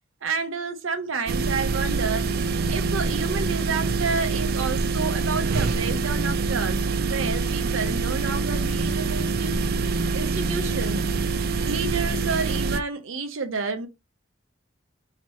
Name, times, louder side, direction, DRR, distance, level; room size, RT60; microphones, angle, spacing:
voice 1, 0.2-2.3 2.7-9.6 10.1-11.0 11.6-13.9, right 4 dB, 80° right, 0.7 m, -30 dB
sound 1, 1.3-12.8, right 4 dB, 50° right, 0.3 m, -25 dB
2.9 x 2.9 x 4.3 m
head